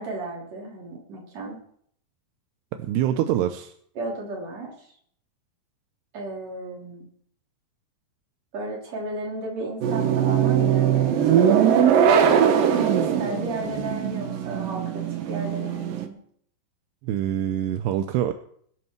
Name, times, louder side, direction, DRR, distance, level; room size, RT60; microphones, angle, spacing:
voice 1, 0.0-1.6 4.0-4.7 6.1-7.1 8.5-11.5 12.9-16.2, right 2 dB, 40° right, -2 dB, 4.6 m, -34 dB
voice 2, 2.8-3.7 17.0-18.3, right 11 dB, 80° right, 8 dB, 2.8 m, -25 dB
sound 1, 9.8-16.1, right 8 dB, 65° right, 2.6 m, -21 dB
21.5 x 11.0 x 4.6 m, 0.64 s
omnidirectional pair, 4.8 m